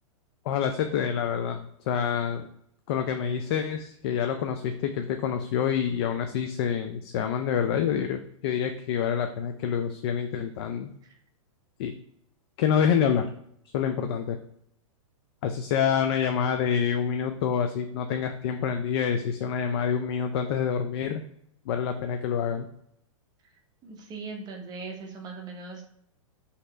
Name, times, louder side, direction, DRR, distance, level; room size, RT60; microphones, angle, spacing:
voice 1, 0.5-2.5 2.9-10.9 11.8-11.9 12.6-13.3 13.7-14.4 15.4-21.2 21.7-22.7, left 7 dB, 50° left, 6 dB, 0.4 m, -27 dB
voice 2, 23.8-25.8, right 4 dB, 25° right, 2 dB, 0.7 m, -39 dB
3.0 x 2.8 x 3.3 m, 0.73 s
hypercardioid pair, 130°, 17 cm